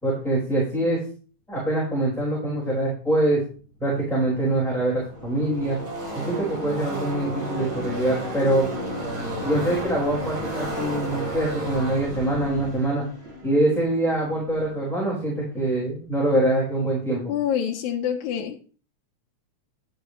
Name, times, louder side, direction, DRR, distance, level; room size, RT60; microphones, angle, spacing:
voice 1, 0.0-1.0 1.5-3.4 3.8-5.8 6.1-8.7 9.4-13.0 13.4-17.3, right 1 dB, ahead, -6 dB, 4.6 m, -24 dB
Car passing by / Race car auto racing, 4.7-14.8, equal, 75° right, 5.5 m, -33 dB
voice 2, 17.3-18.7, left 9 dB, 80° left, 0 dB, 2.3 m, -26 dB
12.0 x 9.8 x 3.2 m, 0.39 s
omnidirectional pair, 3.4 m